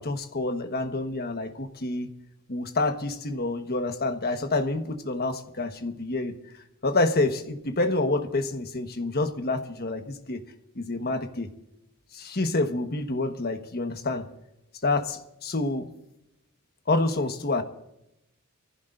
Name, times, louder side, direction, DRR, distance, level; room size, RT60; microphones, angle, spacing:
voice 1, 0.0-2.1 2.5-6.3 6.8-10.4 10.8-11.5 12.1-14.3 14.8-15.9 16.9-17.6, left 2 dB, 45° left, 7 dB, 1.3 m, -28 dB
24.0 x 15.5 x 2.6 m, 0.87 s
head